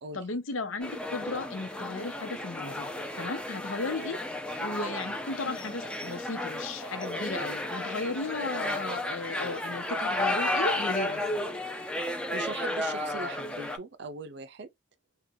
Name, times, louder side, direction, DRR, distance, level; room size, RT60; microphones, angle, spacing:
voice 1, 0.1-2.9 3.2-4.2 4.6-11.4, left 3 dB, 90° left, 0.8 m, -35 dB
sound 1, 0.8-13.8, left 1 dB, 5° left, 0.5 m, -33 dB
voice 2, 12.1-14.7, right 3 dB, 60° right, 0.5 m, -40 dB
3.8 x 2.3 x 2.7 m
head